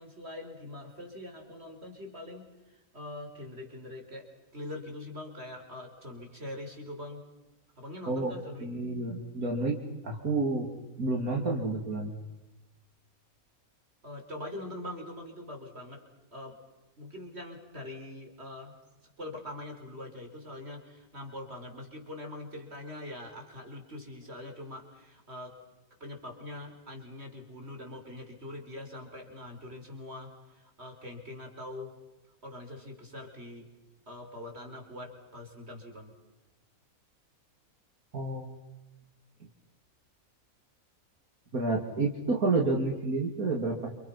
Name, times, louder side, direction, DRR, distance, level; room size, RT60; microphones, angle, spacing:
voice 1, 0.0-7.2 7.8-8.7 14.0-16.6 17.0-18.8 19.2-25.6 26.0-32.0 32.4-33.7 34.1-36.1, left 1 dB, 45° right, 3 dB, 5.2 m, -43 dB
voice 2, 8.1-9.8 10.0-10.7 11.0-12.1 38.1-38.6 41.5-43.9, right 3 dB, 80° right, 0 dB, 3.5 m, -29 dB
30.0 x 28.5 x 5.9 m, 1.0 s
omnidirectional pair, 1.5 m